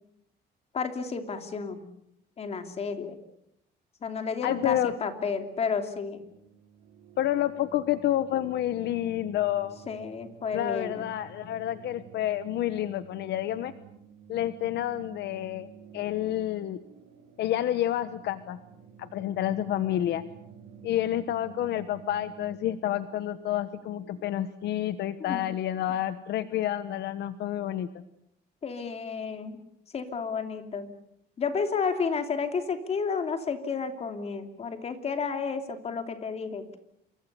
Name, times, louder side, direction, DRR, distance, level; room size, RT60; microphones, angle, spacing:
voice 1, 0.7-1.9 2.4-3.2 4.0-6.2 9.9-11.1 25.2-25.4 28.6-29.6 29.9-30.9 31.4-36.8, left 5 dB, 35° left, 7 dB, 3.0 m, -31 dB
voice 2, 4.4-4.9 7.2-9.8 10.5-13.7 14.3-15.7 15.9-16.8 17.4-18.6 19.0-20.2 20.8-27.9, left 12 dB, 70° left, 13 dB, 1.1 m, -29 dB
sound 1, 6.2-24.2, right 7 dB, 85° right, 5.3 m, -52 dB
27.5 x 24.0 x 6.9 m, 0.76 s
cardioid pair, 160°, 18 cm